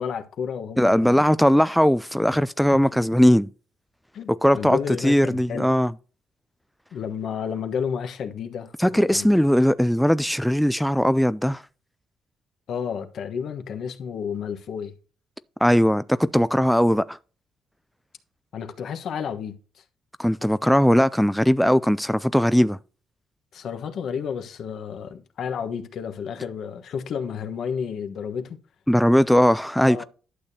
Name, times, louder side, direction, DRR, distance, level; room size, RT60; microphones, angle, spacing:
voice 1, 0.0-1.2 2.7-2.8 4.1-5.7 6.9-9.3 12.7-14.9 18.5-19.6 23.5-28.6 29.8-30.0, left 7 dB, 70° left, 1.2 m, -31 dB
voice 2, 0.8-3.5 4.4-5.9 8.8-11.6 15.6-17.2 20.2-22.8 28.9-30.0, equal, ahead, 0.3 m, -19 dB
11.5 x 6.6 x 2.8 m
cardioid pair, 90°, 0 cm